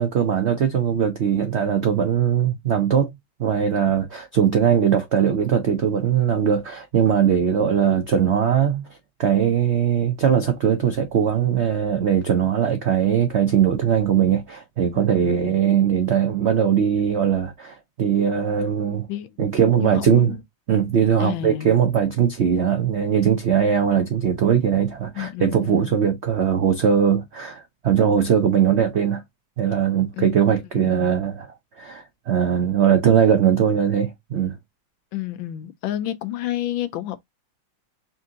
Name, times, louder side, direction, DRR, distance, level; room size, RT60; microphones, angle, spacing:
voice 1, 0.0-3.1 3.4-8.9 9.2-19.1 19.4-20.4 20.7-29.2 29.6-31.5 31.8-34.5, right 8 dB, 80° right, 0.6 m, -20 dB
voice 2, 14.9-15.6 19.1-19.3 19.8-20.4 21.2-21.7 25.1-25.9 30.1-30.3 30.8-31.2 35.1-37.2, left 13 dB, 75° left, 1.3 m, -30 dB
4.3 x 2.7 x 3.6 m
omnidirectional pair, 2.2 m